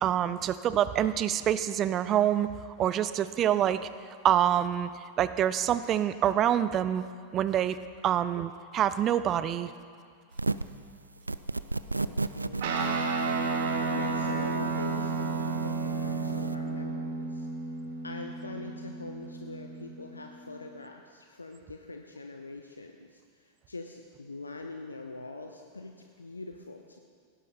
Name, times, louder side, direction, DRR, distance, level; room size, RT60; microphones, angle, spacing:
voice 1, 0.0-2.5 2.8-3.9 4.2-4.9 5.2-7.0 7.3-9.7, right 10 dB, 30° right, 14 dB, 0.5 m, -26 dB
sound 1, 10.3-10.8 11.3-16.5, right 3 dB, 80° right, 0.3 m, -34 dB
voice 2, 12.0-12.7 13.9-17.5 18.0-27.0, left 3 dB, 80° left, 3 dB, 0.7 m, -43 dB
Guitar, 12.6-20.2, right 4 dB, 55° right, 1.5 m, -32 dB
17.0 x 11.0 x 4.3 m, 2.1 s
figure-of-eight pair, 90°, 0 cm